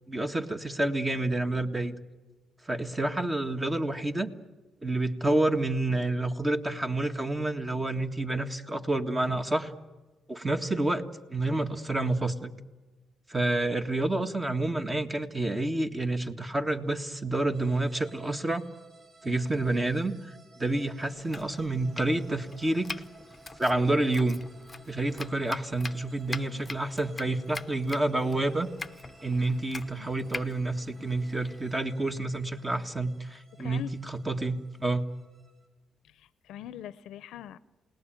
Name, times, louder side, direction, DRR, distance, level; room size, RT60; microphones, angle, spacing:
voice 1, 0.1-2.0 2.7-4.3 4.8-9.7 10.3-11.0 11.3-12.5 13.3-18.7 19.2-23.0 23.6-24.4 24.9-28.7 29.2-35.1, right 2 dB, 20° right, 6 dB, 1.8 m, -29 dB
sound 1, 17.5-35.7, right 4 dB, 55° right, 5.7 m, -57 dB
Domestic sounds home sounds, 21.2-31.8, left 3 dB, 25° left, 0.9 m, -44 dB
voice 2, 26.3-26.7 30.0-30.1 33.5-33.9 36.0-37.6, left 11 dB, 80° left, 17 dB, 0.8 m, -43 dB
29.0 x 19.0 x 9.1 m, 1.2 s
cardioid pair, 90°, 0 cm